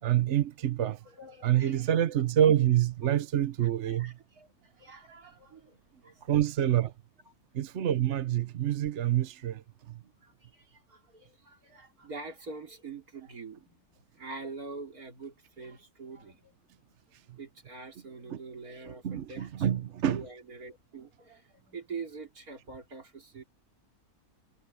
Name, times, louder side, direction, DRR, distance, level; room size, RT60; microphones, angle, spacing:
voice 1, 0.0-1.0 1.4-4.1 6.3-6.9 7.5-9.6 9.9-10.0 18.3-18.4 18.9-20.2, right 11 dB, 55° right, 1.0 m, -27 dB
voice 2, 0.8-2.0 3.6-5.8 6.0-6.4 10.2-16.6 17.4-19.7 20.0-23.4, right 4 dB, 75° right, 4.0 m, -45 dB
omnidirectional pair, 1.6 m